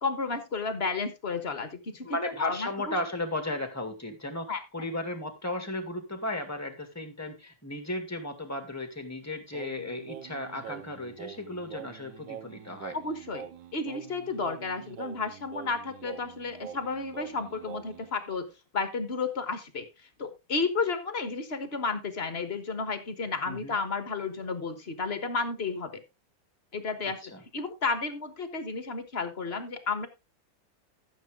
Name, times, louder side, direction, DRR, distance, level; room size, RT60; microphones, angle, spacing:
voice 1, 0.0-2.9 4.5-4.6 12.9-13.5 13.7-18.5 18.7-19.9 20.2-26.0 26.7-30.1, left 4 dB, 35° left, 10 dB, 1.4 m, -32 dB
voice 2, 2.0-13.0 23.5-23.8 27.0-27.4, left 1 dB, 10° left, 7 dB, 1.9 m, -35 dB
Singing, 9.5-18.1, right 10 dB, 75° right, 1.4 m, -45 dB
13.5 x 7.3 x 3.6 m, 0.25 s
omnidirectional pair, 2.1 m